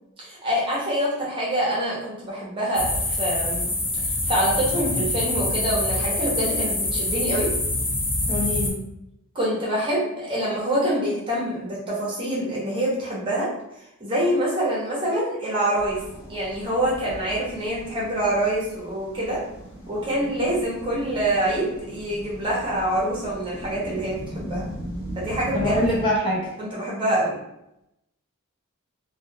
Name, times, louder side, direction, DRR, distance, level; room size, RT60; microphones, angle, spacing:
voice 1, 0.2-3.7 4.2-7.5 9.3-13.5 14.0-16.0 16.3-19.4 19.9-24.6 25.2-25.8 26.6-27.4, right 1 dB, 25° right, -6 dB, 0.8 m, -25 dB
sound 1, 2.7-8.7, left 2 dB, 75° left, 0.9 m, -25 dB
voice 2, 8.3-8.8 25.5-26.4, left 1 dB, 25° left, -5 dB, 0.5 m, -23 dB
sound 2, 15.8-26.1, right 1 dB, 55° left, 1.5 m, -38 dB
2.3 x 2.3 x 2.7 m, 0.84 s
head